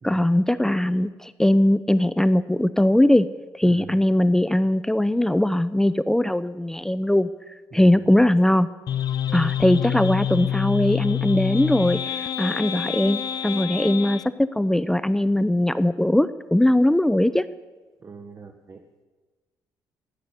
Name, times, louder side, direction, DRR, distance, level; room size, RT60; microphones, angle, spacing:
voice 1, 0.0-3.3 3.5-7.3 7.7-8.7 9.3-17.4, left 1 dB, 5° left, 14 dB, 0.5 m, -20 dB
voice 2, 3.6-3.9 7.7-8.1 9.4-9.8 18.0-18.8, right 5 dB, 35° right, 6 dB, 1.1 m, -43 dB
sound 1, 8.9-14.3, left 10 dB, 60° left, 0.5 m, -27 dB
11.5 x 9.4 x 8.3 m, 1.3 s
cardioid pair, 90°, 8 cm